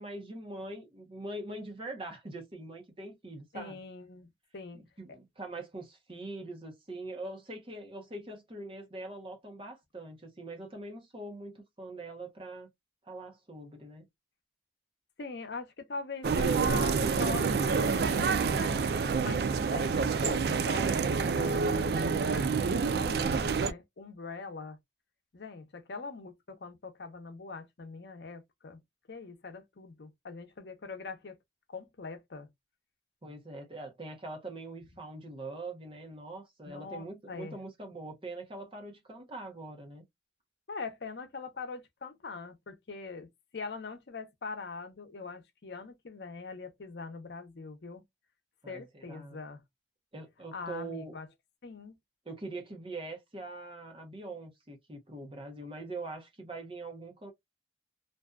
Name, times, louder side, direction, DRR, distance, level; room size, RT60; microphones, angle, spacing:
voice 1, 0.0-3.8 4.7-12.7 13.0-14.1 33.2-40.0 48.6-49.4 50.1-51.1 52.3-57.3, right 2 dB, 30° right, 0.8 m, -43 dB
voice 2, 3.5-4.3 4.5-4.8 5.1-5.2 15.2-18.8 19.2-21.9 22.3-24.8 25.3-28.8 29.1-31.4 31.7-32.5 36.6-37.6 40.7-48.0 48.7-49.6 50.5-51.3 51.6-52.0, left 4 dB, 75° left, 0.6 m, -42 dB
sound 1, 16.2-23.7, right 5 dB, 60° right, 0.3 m, -28 dB
2.6 x 2.3 x 2.3 m
head